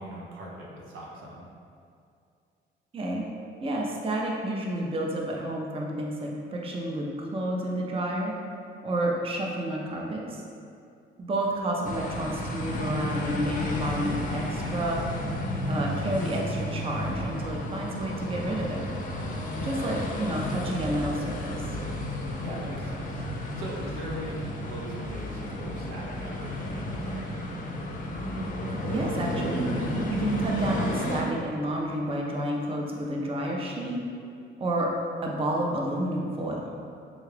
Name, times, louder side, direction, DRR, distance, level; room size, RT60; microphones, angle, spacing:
voice 1, 0.0-1.5 19.6-20.0 22.4-23.2 23.6-27.3, equal, 85° right, -3 dB, 0.6 m, -40 dB
voice 2, 2.9-3.2 3.6-8.3 8.8-10.4 11.2-15.0 15.7-18.8 19.6-21.6 28.9-29.7 30.1-34.0 34.6-34.9 35.2-36.7, right 1 dB, 30° right, -1 dB, 0.5 m, -30 dB
sound 1, 11.8-31.2, equal, 40° left, 0.5 m, -32 dB
3.7 x 2.3 x 3.2 m, 2.4 s
cardioid pair, 90°, 20 cm